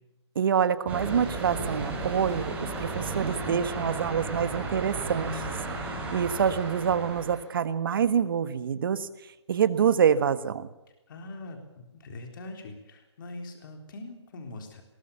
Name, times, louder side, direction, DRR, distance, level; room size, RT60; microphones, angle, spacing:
voice 1, 0.3-5.4 6.1-9.1 9.5-10.7, right 7 dB, 50° right, 13 dB, 1.5 m, -26 dB
sound 1, 0.9-7.4, right 3 dB, 10° right, 4.7 m, -34 dB
voice 2, 11.1-14.8, left 2 dB, 45° left, 4 dB, 3.8 m, -42 dB
20.5 x 18.5 x 7.0 m, 0.99 s
hypercardioid pair, 155°, 15 cm